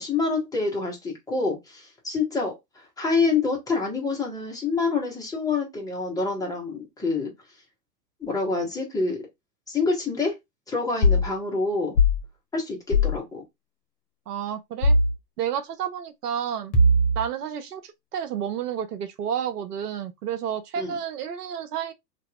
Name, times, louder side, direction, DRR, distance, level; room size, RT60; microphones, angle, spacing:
voice 1, 0.0-7.3 8.2-9.2 9.7-10.3 10.7-11.9 12.5-13.4 20.8-20.9, left 4 dB, 5° left, 0.9 m, -27 dB
sound 1, 11.0-11.3 12.0-12.2 12.9-13.2 14.8-15.1 16.7-17.3, left 1 dB, 40° left, 1.0 m, -19 dB
voice 2, 14.3-15.0 15.4-16.7 17.2-21.9, right 8 dB, 65° right, 0.6 m, -30 dB
2.8 x 2.5 x 2.3 m
figure-of-eight pair, 100°, 50 cm